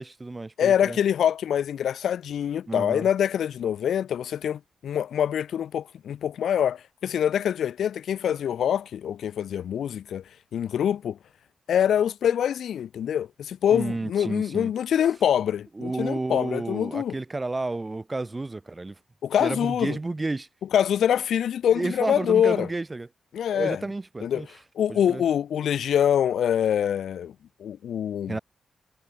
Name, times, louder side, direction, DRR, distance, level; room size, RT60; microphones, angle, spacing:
voice 1, 0.0-1.0 2.7-3.1 13.7-14.7 15.7-18.9 19.4-20.5 21.7-23.1 23.5-24.5 24.9-25.2 28.3-28.4, right 2 dB, 15° right, 1.6 m, -31 dB
voice 2, 0.6-10.2 10.5-11.2 11.7-17.1 19.2-20.0 20.7-22.7 23.3-23.8 24.2-24.4 24.8-27.3 27.6-28.4, left 9 dB, 90° left, 1.0 m, -25 dB
wide cardioid pair, 175°, 0 cm